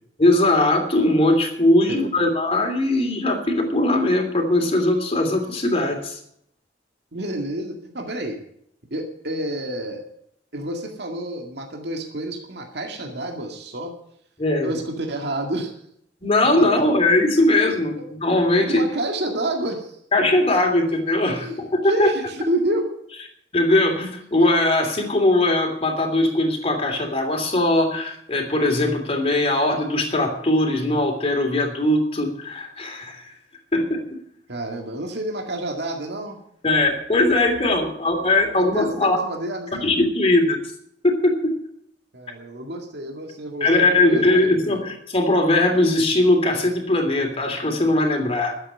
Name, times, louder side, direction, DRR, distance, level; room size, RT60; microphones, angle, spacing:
voice 1, 0.2-6.2 14.4-14.7 16.2-18.8 20.1-22.1 23.5-33.3 33.7-34.0 36.6-39.2 39.7-40.6 41.0-41.6 43.6-48.6, left 2 dB, 35° left, 3 dB, 3.0 m, -20 dB
voice 2, 7.1-8.4 8.9-10.0 10.5-13.9 14.6-15.7 18.0-18.1 18.7-20.0 21.3-21.6 21.8-22.9 34.5-36.4 37.3-37.4 38.5-39.9 42.1-44.2 44.5-44.9, right 1 dB, 65° right, 2 dB, 2.1 m, -29 dB
12.5 x 8.1 x 9.5 m, 0.70 s
head